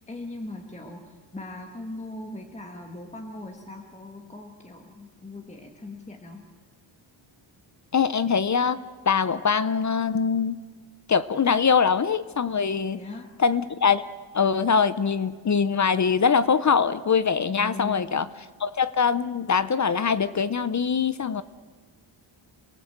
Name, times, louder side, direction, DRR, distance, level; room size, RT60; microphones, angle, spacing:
voice 1, 0.0-6.4 12.9-13.3 17.5-18.1, left 2 dB, 15° left, 2 dB, 1.5 m, -39 dB
voice 2, 7.9-8.8 9.1-10.6 11.1-13.0 13.4-14.0 14.3-18.3 18.6-21.4, left 6 dB, 35° left, 15 dB, 0.6 m, -23 dB
27.5 x 18.5 x 8.0 m, 1.5 s
wide cardioid pair, 165°, 48 cm